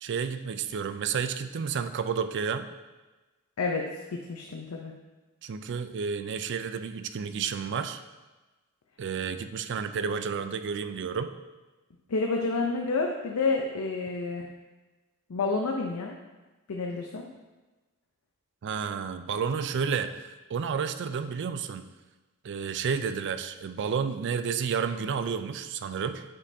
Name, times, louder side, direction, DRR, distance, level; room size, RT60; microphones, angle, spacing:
voice 1, 0.0-2.7 5.4-8.0 9.0-11.3 18.6-21.8 22.4-26.2, right 6 dB, 55° right, 10 dB, 0.4 m, -31 dB
voice 2, 4.1-4.9 12.1-14.5 15.3-16.2 16.7-17.3, left 3 dB, 80° left, 1 dB, 0.6 m, -29 dB
8.3 x 5.3 x 2.7 m, 1.2 s
head